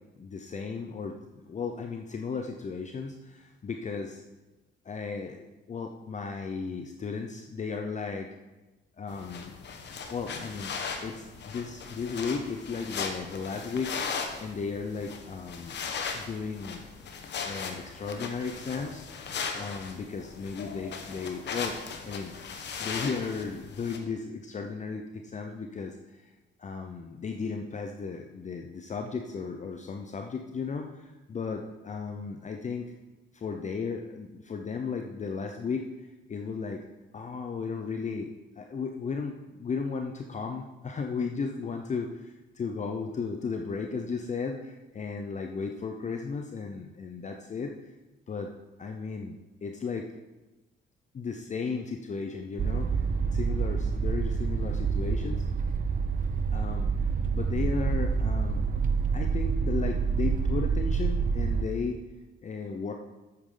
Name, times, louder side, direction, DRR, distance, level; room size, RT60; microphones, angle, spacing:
voice 1, 0.2-4.2 4.9-8.3 9.0-9.5 10.1-10.7 11.0-15.8 16.1-16.8 17.5-21.8 22.0-22.3 22.8-26.0 26.6-32.9 33.3-35.8 36.3-36.8 37.1-38.3 38.6-47.7 48.3-48.5 48.8-50.1 51.1-52.9 53.3-55.4 56.5-56.9 57.3-58.8 59.1-62.0 62.4-62.9, left 5 dB, 35° left, 4 dB, 0.7 m, -35 dB
sound 1, 9.1-24.0, left 5 dB, 60° left, 1.1 m, -38 dB
sound 2, 52.6-61.6, right 5 dB, 40° right, 0.6 m, -27 dB
8.6 x 8.5 x 3.9 m, 1.1 s
cardioid pair, 90°, 20 cm